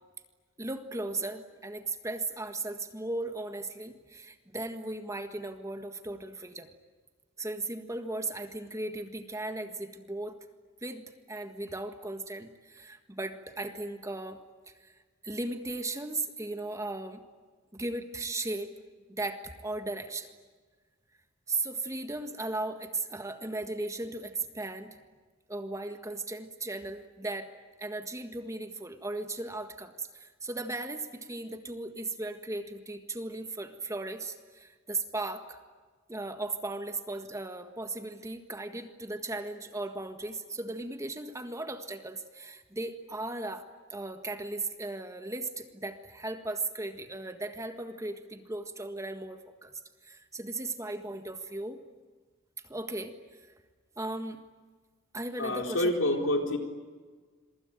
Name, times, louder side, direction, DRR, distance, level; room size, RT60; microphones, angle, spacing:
voice 1, 0.6-6.7 7.4-10.4 10.8-14.4 14.7-15.0 15.2-17.2 17.7-18.7 19.1-20.3 21.5-25.0 25.5-27.5 27.8-35.6 36.1-49.7 50.0-51.8 52.7-53.5 54.0-54.4 55.1-55.9, right 2 dB, 15° right, 7 dB, 1.6 m, -37 dB
voice 2, 55.4-56.6, left 1 dB, 75° left, 3 dB, 4.1 m, -27 dB
27.0 x 24.0 x 9.0 m, 1.5 s
head